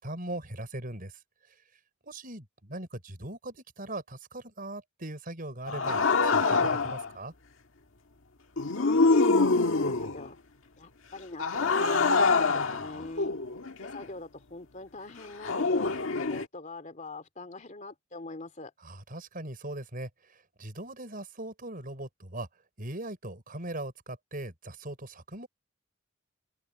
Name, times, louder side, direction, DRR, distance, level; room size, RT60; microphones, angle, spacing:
voice 1, 0.0-1.2 2.0-7.3 18.8-22.5 22.8-25.5, right 1 dB, 45° right, 5.6 m, -40 dB
sound 1, 5.7-7.1 8.6-10.3 11.4-14.0 15.4-16.5, left 3 dB, 80° left, 1.6 m, -25 dB
voice 2, 8.6-10.4 10.8-13.3 13.8-15.9 16.2-18.7, left 2 dB, 40° left, 2.6 m, -43 dB
open air
head